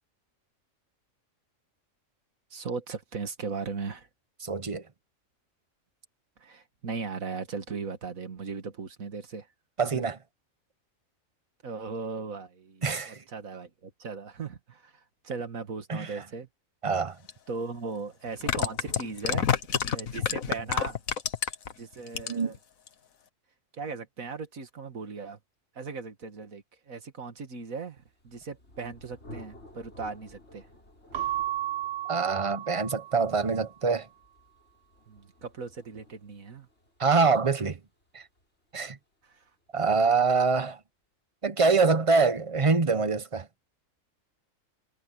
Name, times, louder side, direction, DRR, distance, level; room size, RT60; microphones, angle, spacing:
voice 1, 2.5-4.1 6.4-9.5 9.9-10.0 11.6-16.5 17.5-19.6 19.9-21.0 21.8-22.6 23.7-25.4 25.8-30.7 35.1-36.7 39.2-39.3, right 4 dB, 80° right, 2.3 m, -38 dB
voice 2, 4.4-4.8 9.8-10.2 12.8-13.2 15.9-16.1 16.8-17.1 22.3-22.5 32.1-34.1 37.0-37.8 38.1-38.2 38.7-39.0 39.7-40.8 41.4-43.5, right 4 dB, 25° right, 0.9 m, -25 dB
sound 1, 17.3-17.4 18.3-21.7 22.1-22.6 22.9-23.0, left 7 dB, 85° left, 1.7 m, -28 dB
Thunder, 27.9-39.5, left 1 dB, 50° left, 7.3 m, -53 dB
Keyboard (musical) / Bell, 31.1-33.6, right 13 dB, 55° right, 1.1 m, -34 dB
omnidirectional pair, 1.4 m